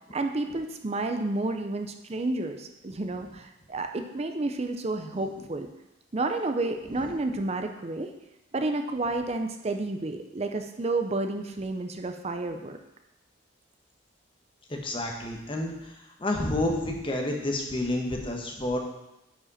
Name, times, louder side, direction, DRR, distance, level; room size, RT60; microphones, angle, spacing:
voice 1, 0.1-5.7 6.1-8.1 8.5-12.8, right 2 dB, 30° right, 6 dB, 0.5 m, -30 dB
voice 2, 14.7-15.9 16.2-18.8, left 1 dB, 25° left, 1 dB, 1.1 m, -30 dB
10.0 x 5.1 x 4.2 m, 0.92 s
head